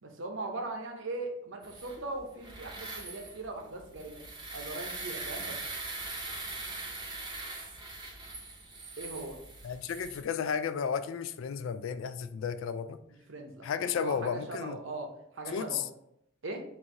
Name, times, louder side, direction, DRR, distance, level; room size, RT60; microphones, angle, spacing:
voice 1, 0.0-4.2 4.5-5.6 9.0-9.4 13.3-13.7 14.0-15.8 16.4-16.6, right 2 dB, 65° right, 3 dB, 0.7 m, -39 dB
sound 1, 1.6-10.2, right 3 dB, 25° right, 0.7 m, -41 dB
voice 2, 9.6-13.0 13.6-14.8 15.5-15.9, left 7 dB, 75° left, 12 dB, 0.3 m, -33 dB
4.4 x 2.6 x 3.7 m, 0.77 s
head